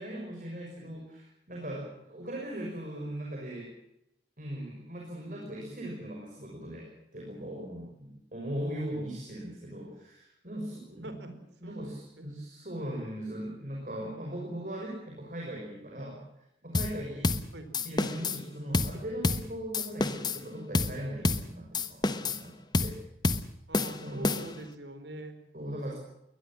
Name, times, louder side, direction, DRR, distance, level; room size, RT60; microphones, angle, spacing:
voice 1, 0.0-3.7 4.4-11.1 11.6-17.4 17.8-22.6 22.8-23.0 24.0-24.5 25.5-25.9, right 1 dB, 45° right, -1 dB, 6.0 m, -39 dB
voice 2, 11.6-12.3 17.5-17.7 23.7-25.4, right 1 dB, 80° right, 9 dB, 4.5 m, -44 dB
sound 1, 16.7-17.0 17.2-17.5 17.7-18.4 18.7-19.0 19.2-19.5 19.7-20.4 20.7-21.0 21.2-21.5 21.7-22.4 22.7-23.0 23.2-23.5 23.7-24.6, left 2 dB, 25° left, 1.2 m, -28 dB
22.0 x 20.5 x 7.5 m, 0.81 s
head